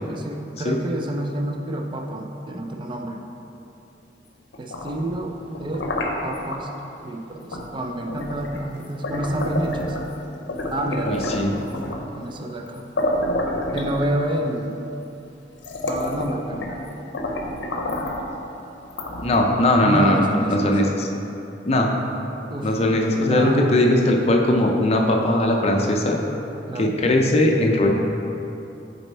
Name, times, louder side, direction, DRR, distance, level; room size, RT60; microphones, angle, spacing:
voice 1, 0.1-3.2 4.6-5.9 6.2-6.7 7.0-10.0 10.7-11.3 12.1-12.8 13.7-14.7 15.8-16.7 19.8-20.7 22.5-22.9 23.2-23.8 26.7-26.9, right 1 dB, 25° right, 2 dB, 0.4 m, -28 dB
sound 1, 4.5-6.6 7.5-7.7 8.1-10.2 10.5-12.1 12.7-12.8 13.0-14.5 15.1-15.2 15.6-16.8 17.1-18.3 18.9-19.7, left 1 dB, 75° left, 0.7 m, -28 dB
voice 2, 11.1-11.5 19.2-21.1 21.6-21.9 22.6-26.2 26.7-27.9, left 1 dB, 35° left, 1 dB, 0.5 m, -19 dB
6.6 x 4.2 x 4.2 m, 2.9 s
head